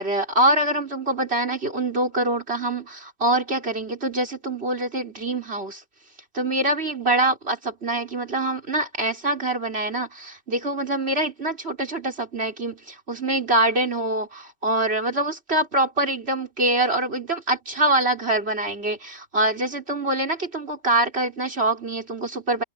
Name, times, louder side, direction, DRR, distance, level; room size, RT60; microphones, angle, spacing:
voice 1, 0.0-5.8 6.3-22.6, right 2 dB, 40° right, 4.6 m, -24 dB
omnidirectional pair, 1.6 m